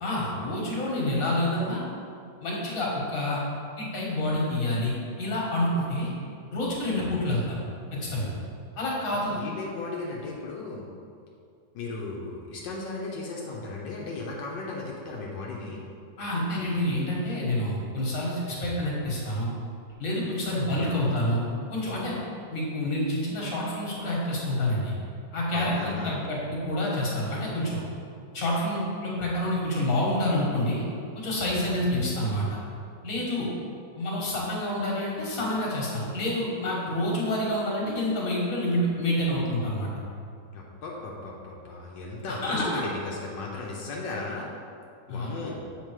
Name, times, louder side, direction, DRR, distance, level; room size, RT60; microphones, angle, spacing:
voice 1, 0.0-1.8 2.4-3.4 3.8-4.9 5.2-6.1 6.5-7.6 7.9-8.3 8.8-9.4 16.2-19.5 20.0-21.4 21.7-22.1 22.5-24.9 25.3-27.8 28.3-30.8 31.1-32.5 33.0-33.5 34.0-39.9 42.3-42.8 45.1-45.3, left 1 dB, 50° left, -4 dB, 1.9 m, -28 dB
voice 2, 9.2-10.8 11.7-15.8 20.8-20.9 25.5-26.2 40.5-44.5 45.1-45.6, left 3 dB, 85° left, -2 dB, 1.4 m, -36 dB
7.3 x 4.1 x 4.6 m, 2.4 s
omnidirectional pair, 1.9 m